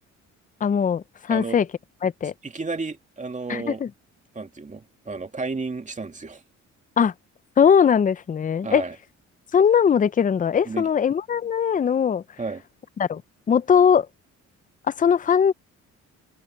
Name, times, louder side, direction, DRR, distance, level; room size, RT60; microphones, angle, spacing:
voice 1, 0.6-1.7 2.0-2.3 3.5-3.9 7.0-7.1 7.6-8.8 9.5-12.2 13.0-13.2 13.5-14.1 14.9-15.5, left 7 dB, 25° left, 0.5 m, -20 dB
voice 2, 2.4-3.8 4.3-6.4 8.6-9.0 10.6-10.9 12.4-12.6, right 3 dB, 25° right, 2.4 m, -32 dB
cardioid pair, 90°, 30 cm